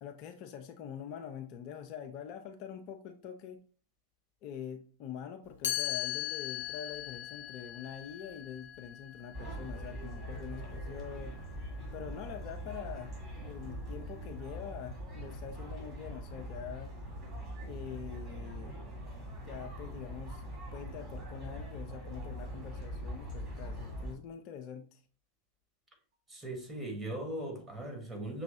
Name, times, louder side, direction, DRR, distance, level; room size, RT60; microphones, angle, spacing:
voice 1, 0.0-3.6 4.4-11.3 11.9-16.9 17.7-18.7 19.4-20.4 20.7-25.0, left 8 dB, 40° left, 0.4 m, -45 dB
Chime, 5.6-11.5, left 13 dB, 60° left, 0.8 m, -39 dB
sound 1, 9.3-24.1, equal, 30° right, 2.2 m, -42 dB
voice 2, 26.3-28.4, right 1 dB, 15° right, 1.4 m, -39 dB
6.1 x 3.0 x 2.7 m
figure-of-eight pair, 90°, 0 cm